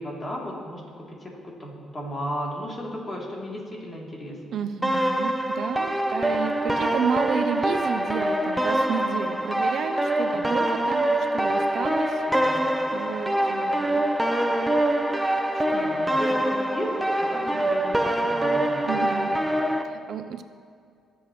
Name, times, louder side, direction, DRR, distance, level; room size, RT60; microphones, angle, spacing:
voice 1, 0.0-4.4 10.3-10.5 12.3-12.7 15.8-16.9 17.2-19.0, equal, 25° left, -3 dB, 3.3 m, -35 dB
voice 2, 4.5-12.2 12.9-14.1 15.5-16.1 18.9-19.4 19.8-20.4, right 7 dB, 65° right, 10 dB, 0.7 m, -31 dB
sound 1, 4.8-19.8, right 1 dB, 5° right, 0.8 m, -24 dB
23.5 x 8.0 x 3.2 m, 2.3 s
cardioid pair, 90°, 0 cm